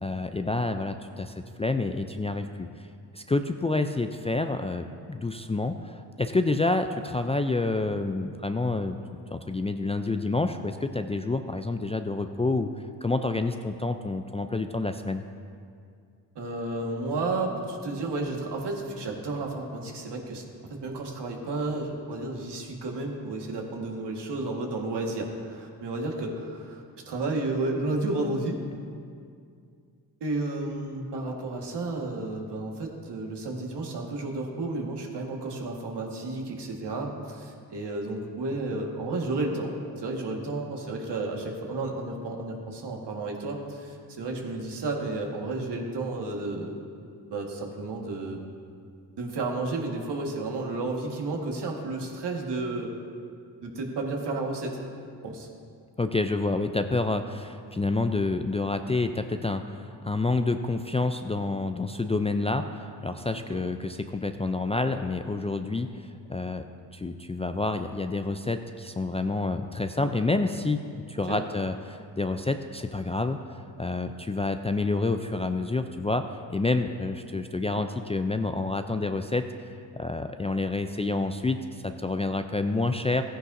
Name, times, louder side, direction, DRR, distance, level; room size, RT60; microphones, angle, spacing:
voice 1, 0.0-2.9 3.1-9.0 9.3-12.7 13.0-15.2 56.0-65.9 66.3-66.6 66.9-70.8 71.1-73.4 73.8-76.2 76.5-79.4 79.9-83.2, left 3 dB, 15° left, 7 dB, 0.4 m, -28 dB
voice 2, 16.4-20.4 20.7-28.6 30.2-46.7 47.3-48.4 49.2-52.9 53.6-54.8 55.2-55.5 63.5-63.6 71.3-71.5, right 2 dB, 65° right, 1 dB, 1.8 m, -32 dB
14.5 x 9.9 x 2.7 m, 2.3 s
supercardioid pair, 50°, 45 cm